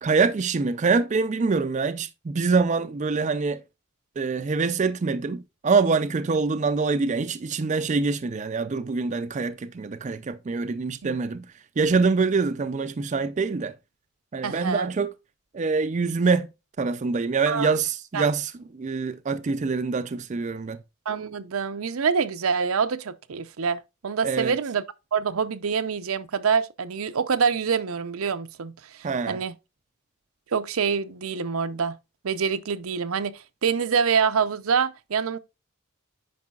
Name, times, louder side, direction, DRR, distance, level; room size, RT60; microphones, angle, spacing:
voice 1, 0.0-3.6 4.2-11.5 11.8-13.8 14.3-15.1 15.5-16.5 16.8-20.8 24.2-24.6 29.0-29.4, right 4 dB, 35° right, 0.4 m, -25 dB
voice 2, 14.4-14.9 17.5-17.7 18.1-18.3 21.1-24.8 25.1-29.5 30.5-32.0 32.2-35.4, right 6 dB, 80° right, 0.6 m, -26 dB
9.4 x 5.4 x 2.3 m
head